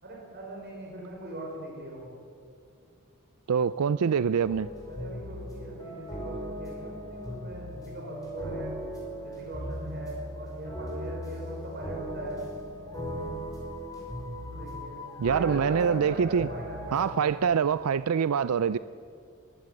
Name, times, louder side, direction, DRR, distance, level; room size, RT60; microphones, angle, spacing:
voice 1, 0.0-2.1 3.6-3.8 4.8-8.7 9.2-12.4 12.9-13.3 14.4-15.0 15.3-17.5, right 1 dB, 50° right, 4.9 m, -40 dB
voice 2, 3.5-4.7 15.2-16.5 16.9-18.8, right 7 dB, 75° right, 0.4 m, -25 dB
sound 1, 4.4-17.3, equal, 15° left, 5.4 m, -39 dB
21.5 x 16.0 x 7.9 m
head